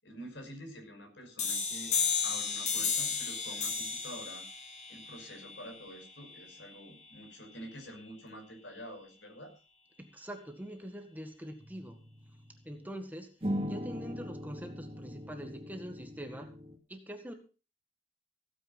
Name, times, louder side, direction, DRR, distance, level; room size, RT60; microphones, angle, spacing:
voice 1, 0.0-1.9 2.2-4.5 4.9-9.6, equal, 85° left, 4 dB, 6.0 m, -47 dB
sound 1, 1.4-6.8, left 6 dB, 40° left, 2.6 m, -34 dB
voice 2, 10.0-12.0 12.7-16.5 16.9-17.3, equal, 10° right, 5 dB, 1.8 m, -44 dB
sound 2, 11.6-12.7 13.4-16.8, equal, 30° right, 2.5 m, -40 dB
16.0 x 9.5 x 5.5 m, 0.34 s
head